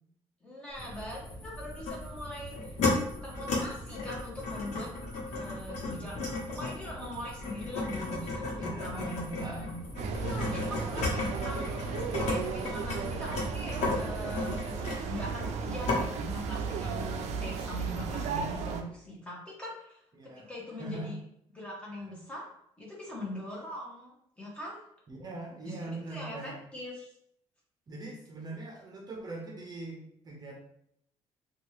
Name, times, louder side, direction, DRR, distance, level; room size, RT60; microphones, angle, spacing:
voice 1, 0.4-2.7 3.2-4.9 5.3-8.5 8.8-21.2 21.5-22.4 22.8-24.8 25.6-27.1, left 1 dB, 10° left, -5 dB, 0.9 m, -42 dB
sound 1, 0.7-14.8, equal, 40° left, 1.3 m, -45 dB
sound 2, 1.9-2.0 2.5-2.9 3.3-3.6 3.9-12.4 12.6-15.6 15.9-16.0, left 3 dB, 75° left, 0.9 m, -33 dB
voice 2, 8.6-9.6 10.5-10.7 18.2-18.5 20.1-20.5 20.8-21.2 25.1-26.6 27.9-30.6, right 2 dB, 35° right, -1 dB, 0.6 m, -41 dB
sound 3, 10.0-18.8, right 5 dB, 80° right, 0.4 m, -35 dB
2.8 x 2.3 x 3.1 m, 0.72 s
cardioid pair, 110°, 12 cm